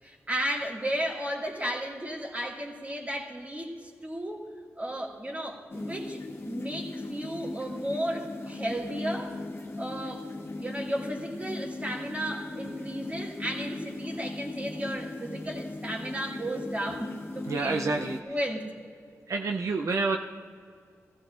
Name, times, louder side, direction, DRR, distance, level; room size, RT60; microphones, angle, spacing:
voice 1, 0.0-9.4 9.8-10.3 10.6-18.7, right 1 dB, 25° right, 0 dB, 2.1 m, -34 dB
sound 1, 5.7-18.2, left 2 dB, 50° left, 1.2 m, -38 dB
voice 2, 17.4-18.4 19.3-20.2, right 3 dB, 70° right, 3 dB, 0.6 m, -28 dB
16.0 x 15.0 x 2.5 m, 2.1 s
cardioid pair, 60°, 5 cm